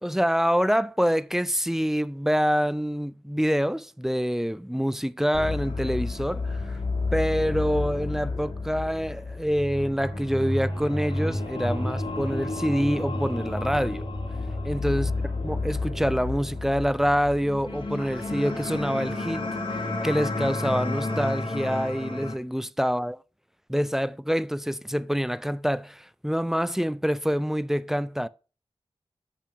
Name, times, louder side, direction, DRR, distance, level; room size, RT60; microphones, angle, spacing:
voice 1, 0.0-6.8 7.1-14.1 14.6-15.1 15.4-19.5 20.0-23.2 23.7-28.3, equal, 5° right, 0.3 m, -26 dB
sound 1, 5.3-22.3, left 2 dB, 60° left, 2.4 m, -30 dB
6.8 x 5.7 x 5.9 m
wide cardioid pair, 70°, 10 cm